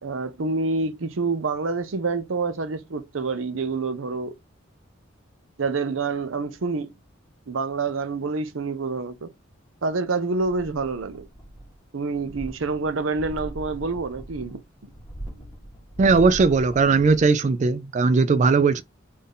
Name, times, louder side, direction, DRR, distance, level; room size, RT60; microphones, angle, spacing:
voice 1, 0.0-4.4 5.6-6.9 7.5-9.3 9.8-11.3 11.9-14.6, right 3 dB, 90° right, 0.7 m, -27 dB
sound 1, 10.4-11.8 12.1-17.4 17.7-17.8, right 1 dB, 15° left, 1.6 m, -40 dB
voice 2, 16.0-18.8, right 4 dB, 35° right, 0.3 m, -18 dB
3.6 x 2.7 x 3.6 m
head